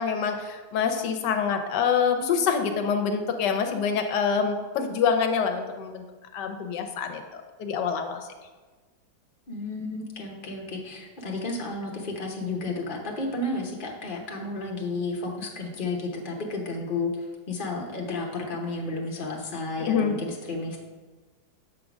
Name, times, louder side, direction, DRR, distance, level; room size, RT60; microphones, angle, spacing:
voice 1, 0.0-6.0 6.3-8.2 19.8-20.2, left 6 dB, 70° left, 6 dB, 1.3 m, -26 dB
voice 2, 9.5-20.8, left 2 dB, 35° left, 0 dB, 0.9 m, -32 dB
7.6 x 3.8 x 6.0 m, 1.3 s
omnidirectional pair, 2.1 m